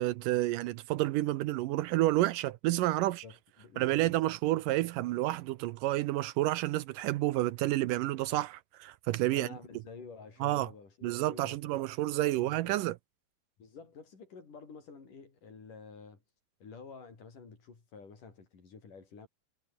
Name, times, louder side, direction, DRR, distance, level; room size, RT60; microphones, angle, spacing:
voice 1, 0.0-3.2 3.8-9.5 10.4-10.7 11.0-13.0, right 16 dB, 80° right, 2.2 m, -30 dB
voice 2, 3.0-4.1 9.3-12.7 13.6-16.2 16.6-19.3, left 5 dB, 65° left, 6.7 m, -50 dB
omnidirectional pair, 4.0 m